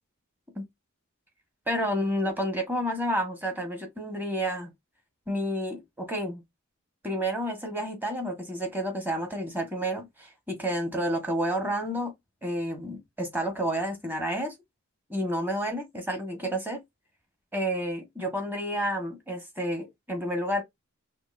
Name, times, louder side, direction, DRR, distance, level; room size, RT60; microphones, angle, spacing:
voice 1, 1.7-4.7 5.3-6.4 7.0-12.1 12.4-14.5 15.1-16.8 17.5-20.6, equal, 10° right, 1.3 m, -30 dB
5.8 x 2.5 x 2.6 m
head